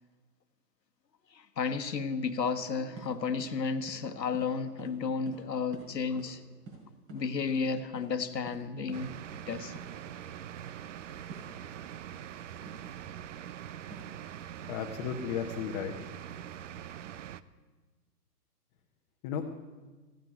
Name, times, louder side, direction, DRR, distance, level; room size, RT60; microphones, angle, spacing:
voice 1, 1.3-6.4 7.1-9.1 9.5-9.8, left 5 dB, 85° left, 8 dB, 1.3 m, -32 dB
sound 1, 3.0-3.1 3.4-3.6 3.9-4.0 4.3-4.5 4.8-4.9 5.3-5.4 5.7-5.9 6.2-6.4 6.7-7.6 8.0-8.1 8.5-8.6 8.9-9.0 9.3-9.5 9.7-9.9 11.3-11.5 12.7-12.9 13.9-14.2, right 3 dB, 30° right, 5.1 m, -48 dB
sound 2, 8.9-17.4, right 10 dB, 50° right, 0.6 m, -43 dB
voice 2, 14.6-15.9 19.2-19.4, left 8 dB, 25° left, 2 dB, 1.0 m, -34 dB
15.0 x 9.2 x 9.2 m, 1.3 s
hypercardioid pair, 135°, 49 cm